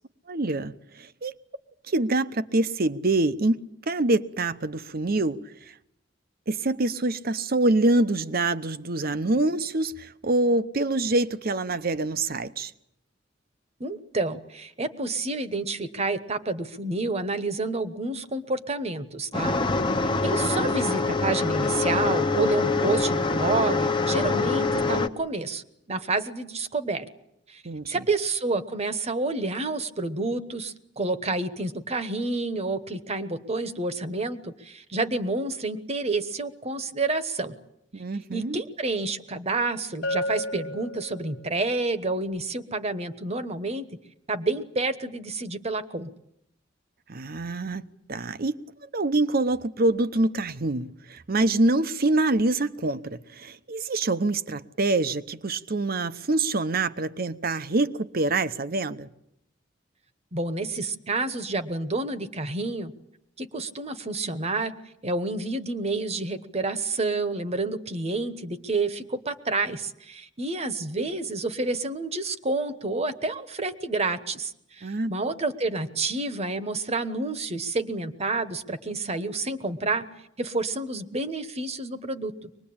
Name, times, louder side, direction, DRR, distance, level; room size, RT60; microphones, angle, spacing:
voice 1, 0.3-1.3 1.9-3.6 3.9-5.4 6.5-12.7 27.6-28.0 37.9-38.6 47.1-47.8 48.1-48.6 48.9-59.1 74.8-75.1, right 2 dB, 50° right, 0.9 m, -25 dB
voice 2, 13.8-19.5 20.2-25.6 25.9-27.1 27.5-27.6 27.9-37.5 38.3-43.9 44.3-46.1 60.3-62.9 63.4-64.7 65.0-80.1 80.4-82.5, right 3 dB, 35° right, 1.2 m, -29 dB
sound 1, 19.3-25.1, left 3 dB, 25° left, 1.0 m, -25 dB
Bell, 40.0-41.7, left 1 dB, 60° left, 1.4 m, -32 dB
23.5 x 20.5 x 8.7 m
head